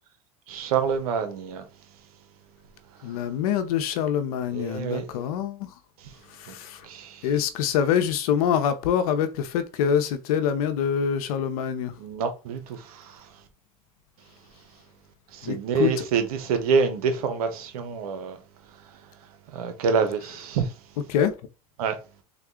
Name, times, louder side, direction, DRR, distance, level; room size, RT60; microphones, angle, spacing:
voice 1, 0.5-1.6 4.5-5.0 6.5-6.6 6.8-7.3 12.0-13.3 15.3-18.4 19.5-20.7 21.8-22.0, right 5 dB, 80° right, 0.8 m, -27 dB
voice 2, 3.0-5.7 6.4-6.8 7.2-11.9 15.4-16.0 21.1-21.3, left 8 dB, 80° left, 0.7 m, -25 dB
3.6 x 2.3 x 3.6 m
supercardioid pair, 110°, 18 cm